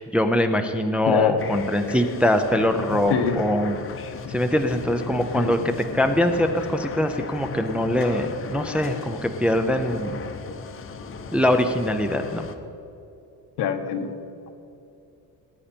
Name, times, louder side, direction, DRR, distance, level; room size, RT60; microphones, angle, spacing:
voice 1, 0.0-3.8 4.3-10.1 11.3-12.4, left 1 dB, 5° right, 5 dB, 0.4 m, -23 dB
voice 2, 1.1-1.4 3.1-3.4 5.4-5.7 13.6-14.1, left 7 dB, 80° left, 6 dB, 1.2 m, -25 dB
sound 1, 1.4-12.6, left 5 dB, 35° left, 0.7 m, -36 dB
19.0 x 9.9 x 4.4 m, 2.8 s
cardioid pair, 160°, 39 cm